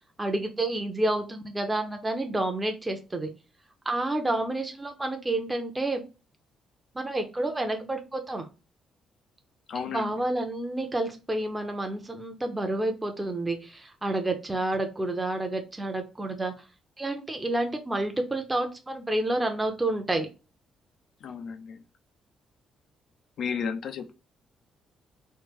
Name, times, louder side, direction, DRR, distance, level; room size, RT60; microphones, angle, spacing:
voice 1, 0.2-3.3 3.9-6.0 6.9-8.5 9.9-16.6 17.0-20.3, right 2 dB, 15° right, 5 dB, 0.6 m, -29 dB
voice 2, 9.7-10.2 21.2-21.8 23.4-24.1, left 6 dB, 70° left, 6 dB, 0.5 m, -33 dB
3.2 x 2.1 x 3.4 m, 0.31 s
cardioid pair, 90°, 0 cm